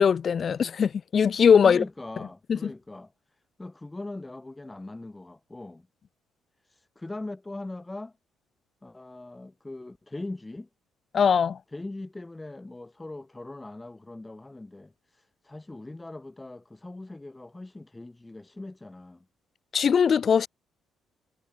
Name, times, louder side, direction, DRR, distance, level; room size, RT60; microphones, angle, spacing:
voice 1, 0.0-1.8 2.5-2.6 11.1-11.6 19.7-20.5, left 7 dB, 45° left, 0.4 m, -20 dB
voice 2, 1.6-5.9 6.6-8.2 8.8-10.7 11.7-19.3, left 2 dB, 15° left, 4.1 m, -41 dB
cardioid pair, 110°, 0 cm